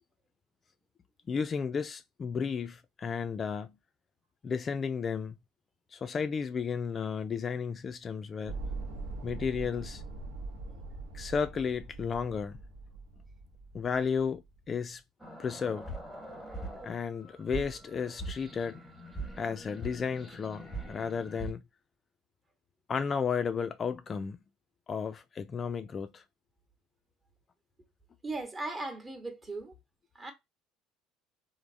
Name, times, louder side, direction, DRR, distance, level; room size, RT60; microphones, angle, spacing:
voice 1, 1.3-3.7 4.4-5.4 5.9-8.6 9.2-10.0 11.1-12.6 13.7-14.4 14.7-15.0 15.4-15.9 16.8-18.8 19.4-21.6 22.9-24.4 24.9-26.2, left 6 dB, 35° left, 0.3 m, -33 dB
sound 1, 8.5-14.8, right 3 dB, 85° right, 0.7 m, -42 dB
sound 2, 15.2-21.5, right 2 dB, 10° right, 1.1 m, -42 dB
voice 2, 28.2-29.8 30.1-30.3, right 2 dB, 25° right, 0.9 m, -38 dB
3.2 x 2.0 x 2.5 m
supercardioid pair, 95°, 0 cm